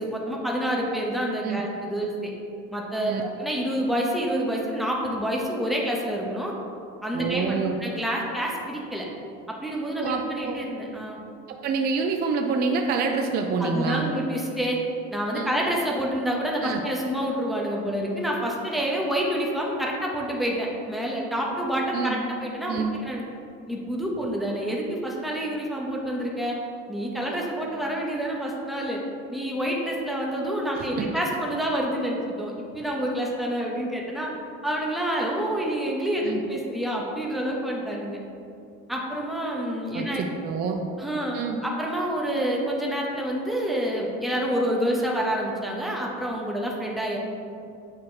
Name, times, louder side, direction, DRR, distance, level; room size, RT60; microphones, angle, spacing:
voice 1, 0.0-2.3 2.7-6.5 7.0-9.1 9.6-11.2 13.6-14.8 15.1-23.2 23.7-26.6 26.9-29.0 29.3-34.3 34.6-38.2 38.9-40.3 41.0-47.2, equal, ahead, -3 dB, 0.7 m, -28 dB
voice 2, 7.1-7.8 10.0-10.6 11.6-14.1 15.3-15.5 16.6-16.8 21.9-22.2 22.7-22.9 31.0-31.1 36.2-36.4 39.9-40.8 41.3-41.6, right 5 dB, 30° right, 3 dB, 0.4 m, -27 dB
8.5 x 2.9 x 4.7 m, 2.6 s
cardioid pair, 145°, 31 cm